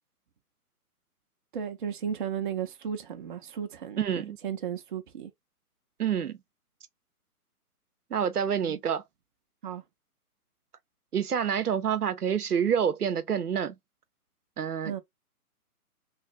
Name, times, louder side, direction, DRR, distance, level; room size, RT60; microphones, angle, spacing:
voice 1, 1.5-5.3 8.7-8.8 9.6-9.8 14.8-15.0, right 8 dB, 35° right, 0.6 m, -34 dB
voice 2, 4.0-4.4 6.0-6.4 8.1-9.0 11.1-13.8 14.6-15.0, right 8 dB, 90° right, 0.7 m, -27 dB
3.2 x 2.5 x 3.6 m
figure-of-eight pair, 135°, 45 cm